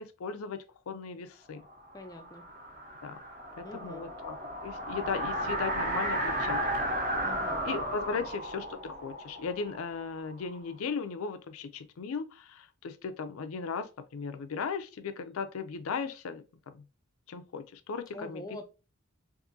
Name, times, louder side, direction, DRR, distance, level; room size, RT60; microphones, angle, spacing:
voice 1, 0.0-1.6 3.0-3.2 3.6-4.4 4.6-6.9 7.6-16.4 16.7-16.8 17.3-18.4, left 5 dB, 85° left, 0.4 m, -37 dB
gust of wind, 1.7-10.5, right 1 dB, 40° right, 0.9 m, -34 dB
voice 2, 1.9-2.5 3.6-4.1 7.2-7.6 8.1-8.2 18.1-18.6, left 1 dB, 20° left, 0.3 m, -44 dB
3.6 x 2.6 x 2.6 m
head